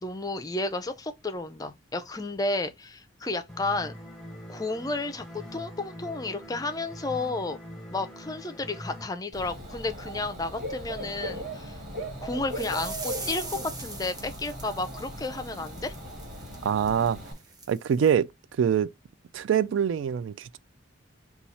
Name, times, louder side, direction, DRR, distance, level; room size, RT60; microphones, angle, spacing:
voice 1, 0.0-3.9 4.5-7.6 7.9-11.8 12.2-13.4 13.8-15.9, left 2 dB, 20° left, 0.4 m, -32 dB
sound 1, 3.5-9.1, equal, ahead, 1.0 m, -43 dB
Dog / Bird, 9.3-17.3, equal, 45° right, 2.4 m, -38 dB
sound 2, 12.5-18.1, right 3 dB, 20° right, 0.8 m, -42 dB
voice 2, 16.6-17.2 17.7-18.3 18.6-18.9 19.3-20.6, right 8 dB, 75° right, 0.3 m, -24 dB
4.1 x 2.3 x 4.3 m
head